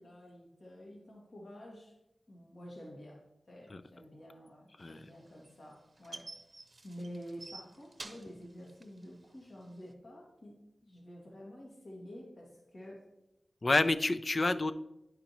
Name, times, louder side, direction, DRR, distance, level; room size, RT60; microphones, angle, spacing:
voice 1, 0.0-1.9 2.3-6.3 6.8-13.1, equal, 65° left, -2 dB, 2.0 m, -49 dB
sound 1, 4.9-9.9, right 2 dB, 45° right, 0.8 m, -50 dB
voice 2, 13.6-14.7, left 2 dB, 50° left, 12 dB, 0.4 m, -29 dB
10.0 x 5.1 x 3.0 m, 0.86 s
cardioid pair, 45°, 0 cm